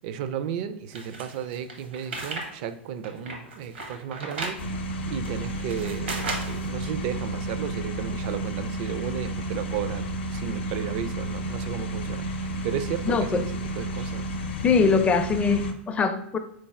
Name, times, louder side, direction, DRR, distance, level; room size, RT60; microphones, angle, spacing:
voice 1, 0.0-14.4, right 8 dB, 55° right, 11 dB, 0.4 m, -34 dB
sound 1, 0.9-2.5 2.9-4.6 5.2-6.7, right 3 dB, 80° right, 1.0 m, -34 dB
sound 2, 4.6-15.7, right 1 dB, 75° left, 0.6 m, -32 dB
voice 2, 13.1-13.4 14.6-16.4, left 5 dB, 20° left, 8 dB, 0.5 m, -22 dB
3.9 x 3.3 x 3.5 m, 0.75 s
hypercardioid pair, 100°, 6 cm